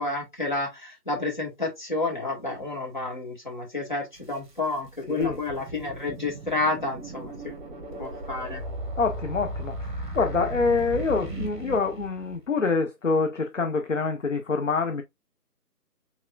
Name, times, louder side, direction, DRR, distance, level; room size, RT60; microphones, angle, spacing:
voice 1, 0.0-7.6 7.9-8.6, left 2 dB, 30° left, 1.1 m, -30 dB
sound 1, 4.2-4.3 4.8-12.4, right 1 dB, 30° right, 1.4 m, -36 dB
voice 2, 5.1-5.4 9.0-15.0, left 4 dB, 50° left, 0.6 m, -26 dB
4.5 x 3.5 x 2.3 m
figure-of-eight pair, 160°, 48 cm